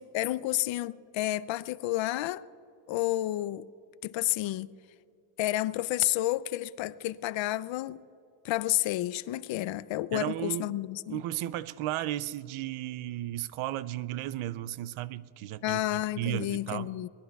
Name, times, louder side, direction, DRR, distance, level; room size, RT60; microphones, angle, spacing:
voice 1, 0.0-2.5 2.9-3.7 4.0-4.7 5.4-8.0 8.4-11.2 15.6-17.1, left 15 dB, 70° left, 0.5 m, -30 dB
voice 2, 10.1-10.8 11.1-17.0, right 14 dB, 80° right, 0.6 m, -34 dB
23.5 x 19.5 x 2.3 m
cardioid pair, 160°, 48 cm